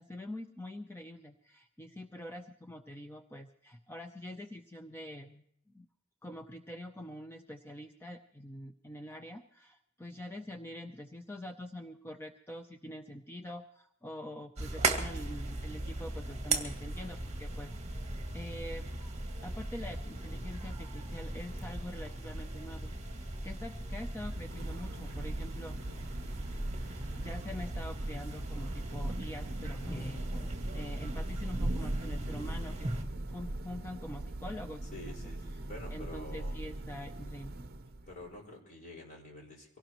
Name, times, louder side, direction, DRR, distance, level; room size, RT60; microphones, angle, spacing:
voice 1, 0.0-5.4 5.7-5.9 6.2-18.1 18.3-18.8 19.4-22.9 23.2-25.8 26.9-32.9 33.3-35.2 35.5-35.6 35.9-37.6, left 1 dB, 10° left, 5 dB, 0.6 m, -45 dB
sound 1, 14.6-33.0, right 2 dB, 30° right, 2.1 m, -38 dB
Thunder / Rain, 23.9-38.3, right 1 dB, 45° right, 0.9 m, -40 dB
voice 2, 34.9-36.6 38.1-39.8, left 1 dB, 40° left, 0 dB, 5.0 m, -48 dB
24.5 x 18.0 x 3.0 m, 0.73 s
head